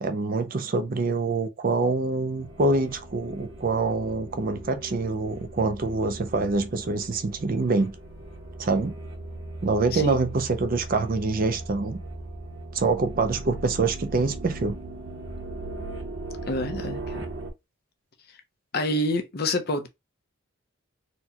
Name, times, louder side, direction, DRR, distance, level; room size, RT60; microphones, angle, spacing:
voice 1, 0.0-7.9 8.6-9.0 9.6-12.0 12.7-14.8, right 3 dB, 45° right, 0.4 m, -25 dB
sound 1, 2.4-17.5, right 2 dB, 60° right, 0.9 m, -38 dB
voice 2, 16.5-17.2 18.7-19.9, left 1 dB, 50° left, 0.6 m, -27 dB
4.2 x 2.2 x 2.8 m
head